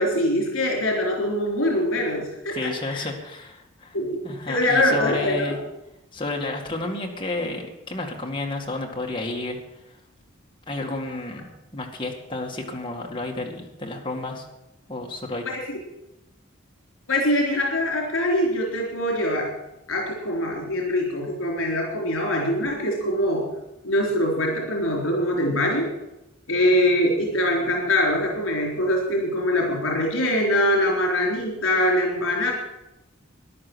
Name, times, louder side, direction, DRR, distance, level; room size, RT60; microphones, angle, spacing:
voice 1, 0.0-3.1 3.9-4.2 4.5-5.6 15.4-15.6 17.1-19.5 19.9-23.4 23.8-25.9 26.5-32.5, left 1 dB, 75° left, -1 dB, 3.9 m, -23 dB
voice 2, 2.5-4.0 4.2-5.6 6.1-9.6 9.9-10.0 10.7-14.5 14.9-15.5, left 2 dB, 25° left, 0 dB, 2.0 m, -31 dB
14.0 x 11.0 x 6.3 m, 0.91 s
head